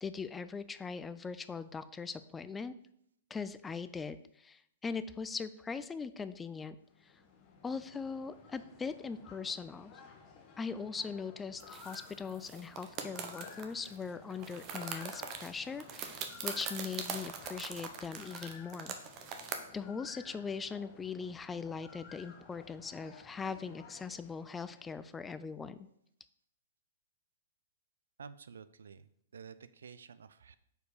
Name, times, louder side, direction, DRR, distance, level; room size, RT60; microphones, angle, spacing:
voice 1, 0.0-2.7 3.3-6.8 7.0-7.1 7.6-9.9 10.6-18.9 19.7-25.8, left 5 dB, 15° left, 13 dB, 0.3 m, -40 dB
sound 1, 6.8-25.2, left 6 dB, 30° left, 1.2 m, -55 dB
sound 2, 11.6-14.0 14.3-19.6, right 7 dB, 35° right, 0.8 m, -42 dB
voice 2, 28.2-30.6, right 6 dB, 80° right, 14 dB, 0.4 m, -51 dB
4.6 x 4.5 x 4.8 m, 0.71 s
hypercardioid pair, 125°, 0 cm